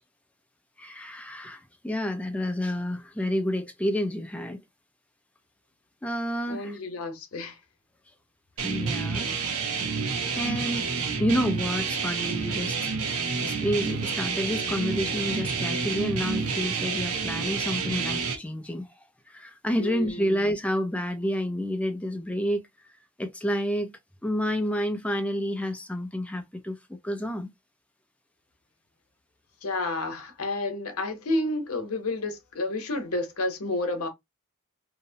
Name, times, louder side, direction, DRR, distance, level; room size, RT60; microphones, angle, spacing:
voice 1, 0.8-4.6 6.0-6.8 8.6-9.3 10.4-10.9 11.2-12.8 13.4-22.6 23.2-27.5, equal, 5° left, 0.3 m, -29 dB
voice 2, 6.5-7.6 19.8-20.4 29.6-34.1, left 2 dB, 85° left, 0.8 m, -30 dB
sound 1, 8.6-18.4, right 5 dB, 80° right, 0.7 m, -29 dB
2.8 x 2.0 x 2.7 m
head